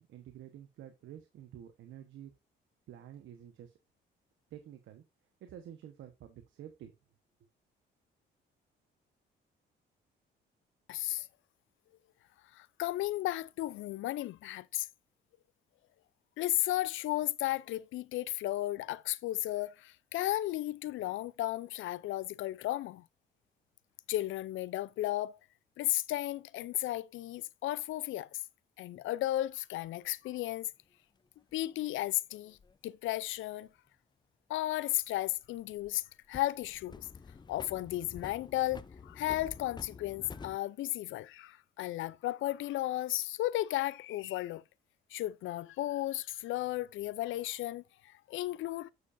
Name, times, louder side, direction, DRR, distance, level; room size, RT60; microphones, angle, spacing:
voice 1, 0.0-2.3 2.9-3.7 4.5-5.0 5.4-6.9, right 10 dB, 80° right, 1.2 m, -50 dB
voice 2, 10.9-11.3 12.5-14.9 16.4-23.0 24.1-25.4 25.8-28.4 28.8-30.7 31.5-32.6 32.8-33.7 34.5-37.1 37.5-44.6 45.1-48.9, left 15 dB, 80° left, 0.5 m, -34 dB
sound 1, 31.5-32.8 35.0-36.0 36.3-40.6, left 5 dB, 20° left, 0.6 m, -49 dB
8.3 x 6.8 x 2.6 m
cardioid pair, 90°, 20 cm